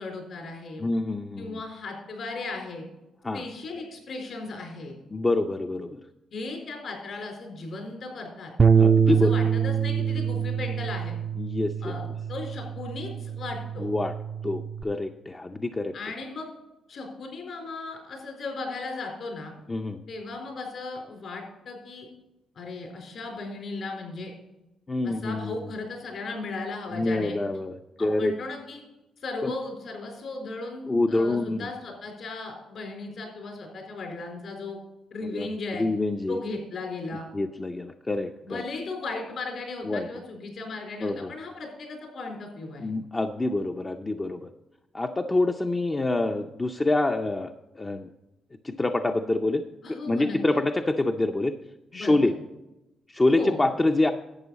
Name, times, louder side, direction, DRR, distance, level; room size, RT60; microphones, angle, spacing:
voice 1, 0.0-0.8 1.4-2.8 3.3-4.9 6.3-8.5 9.1-11.1 11.8-13.9 15.9-16.5 16.9-19.5 20.1-22.1 22.5-24.3 25.0-27.4 28.0-28.8 29.2-34.8 35.1-35.9 36.3-37.2 38.4-42.9 49.8-50.4 51.9-52.3 53.3-53.6, left 3 dB, 60° left, 1 dB, 4.1 m, -36 dB
voice 2, 0.8-1.6 3.2-3.4 5.1-6.0 8.8-9.3 11.4-11.9 13.8-14.1 14.4-15.9 19.7-20.0 24.9-25.5 26.9-28.3 29.4-29.5 30.9-31.7 35.3-35.5 35.8-36.4 37.3-38.6 39.8-40.1 41.0-41.3 42.8-44.5 44.9-48.1 48.6-51.5 51.9-52.3 53.1-54.1, left 2 dB, 20° left, 5 dB, 0.5 m, -26 dB
Bass guitar, 8.6-14.8, right 7 dB, 35° right, 0.4 m, -25 dB
11.5 x 8.0 x 4.1 m, 0.98 s
cardioid pair, 90°, 0 cm